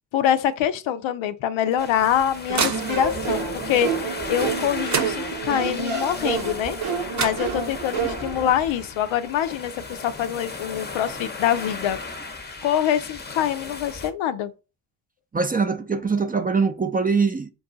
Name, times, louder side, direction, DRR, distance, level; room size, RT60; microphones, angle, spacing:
voice 1, 0.1-6.8 7.2-12.0 12.6-14.5, left 10 dB, 85° left, 0.5 m, -25 dB
sound 1, 1.7-3.3 4.5-4.6 4.9-5.7 6.8-6.9 7.1-8.0, right 4 dB, 35° right, 0.8 m, -30 dB
sound 2, 1.8-14.1, left 3 dB, 20° left, 0.7 m, -36 dB
sound 3, 2.5-8.5, right 5 dB, 90° right, 1.1 m, -29 dB
voice 2, 15.3-17.5, right 4 dB, 20° right, 0.4 m, -22 dB
4.6 x 2.3 x 3.8 m
cardioid pair, 70°, 46 cm